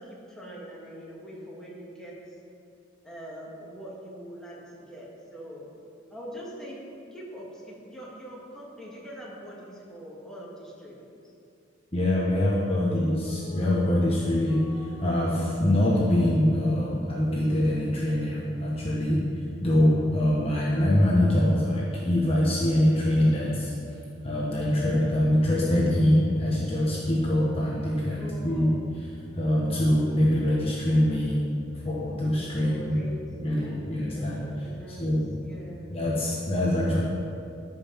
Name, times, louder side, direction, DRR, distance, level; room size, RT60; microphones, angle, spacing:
voice 1, 0.0-2.3 3.0-5.7 6.1-6.8 7.1-11.2 28.1-28.8 32.6-35.9, equal, 5° left, -6 dB, 2.0 m, -43 dB
voice 2, 11.9-19.2 19.6-23.7 24.2-28.7 29.3-31.4 31.8-32.9 33.4-34.4 35.0-35.4 35.9-37.0, left 1 dB, 30° left, -5 dB, 1.2 m, -24 dB
sound 1, 12.8-18.2, right 1 dB, 65° left, 2.0 m, -48 dB
13.5 x 5.7 x 5.7 m, 2.5 s
head